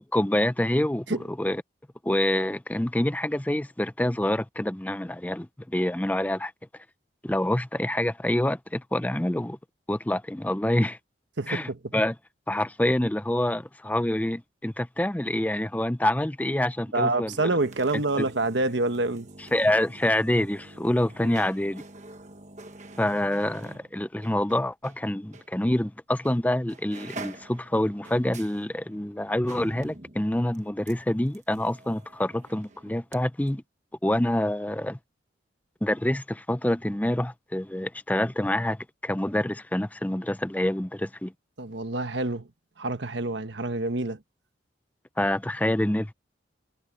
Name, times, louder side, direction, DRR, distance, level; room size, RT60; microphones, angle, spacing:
voice 1, 0.1-1.6 2.0-6.5 7.2-9.6 9.9-11.0 11.5-12.2 12.5-17.5 18.2-18.3 19.5-21.8 23.0-33.6 34.0-35.0 35.8-41.3 45.2-46.1, left 1 dB, 10° left, 0.5 m, -26 dB
voice 2, 11.4-11.9 16.9-19.3 21.2-21.3 41.6-42.5 42.8-44.2, right 2 dB, 70° right, 1.3 m, -27 dB
sound 1, 17.2-25.0 25.3-25.5 26.2-26.4 26.7-33.2 33.5-33.6, right 2 dB, 40° right, 1.2 m, -46 dB
head